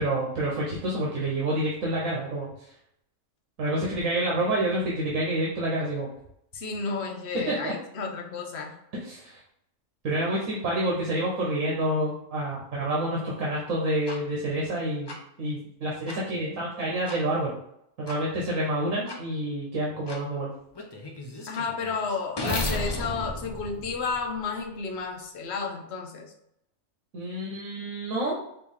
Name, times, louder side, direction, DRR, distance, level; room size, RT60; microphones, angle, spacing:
voice 1, 0.0-2.5 3.6-6.1 7.5-7.7 9.0-9.4 10.0-17.6 18.0-20.5 27.1-28.4, right 1 dB, 75° right, -4 dB, 1.3 m, -28 dB
voice 2, 6.5-8.7 21.5-26.3, left 4 dB, 60° left, 2 dB, 1.0 m, -32 dB
sound 1, 14.1-14.2 15.1-15.2 16.1-16.2 17.1-17.2 18.1-18.2 19.1-19.2 20.1-20.2 20.8-24.6, left 2 dB, 35° left, 0.4 m, -34 dB
4.6 x 3.1 x 3.5 m, 0.75 s
omnidirectional pair, 1.4 m